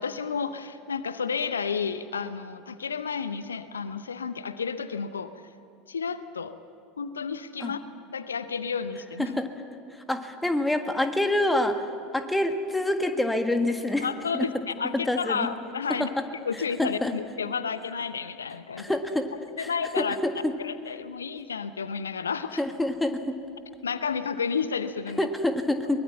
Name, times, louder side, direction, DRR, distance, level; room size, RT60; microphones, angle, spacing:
voice 1, 0.0-5.3 5.9-6.5 7.0-7.8 8.1-9.4 14.0-16.1 16.4-19.0 19.6-22.6 23.8-25.3, left 6 dB, 75° left, 12 dB, 0.7 m, -31 dB
voice 2, 10.1-11.8 12.1-14.1 14.3-14.5 14.9-15.5 16.0-16.1 16.8-17.1 18.8-19.3 19.6-19.7 20.0-20.5 22.6-23.4 25.2-26.0, left 1 dB, 5° left, 7 dB, 1.7 m, -26 dB
23.0 x 20.0 x 7.4 m, 2.6 s
figure-of-eight pair, 75°, 0 cm